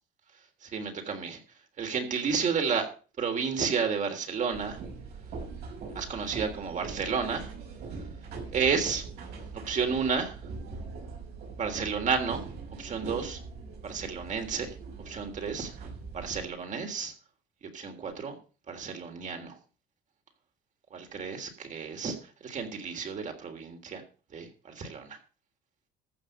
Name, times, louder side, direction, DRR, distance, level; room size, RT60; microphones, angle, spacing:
voice 1, 0.6-1.4 1.8-4.8 5.9-7.5 8.5-9.1 9.5-10.4 11.5-12.4 12.8-13.4 13.8-14.8 15.0-15.7 16.1-17.1 17.7-18.3 18.7-19.6 20.9-24.0 24.3-25.2, right 5 dB, 45° right, 4 dB, 3.4 m, -31 dB
sound 1, 4.5-16.5, right 4 dB, 70° right, 6.4 m, -42 dB
14.5 x 6.3 x 6.5 m, 0.37 s
cardioid pair, 110°, 17 cm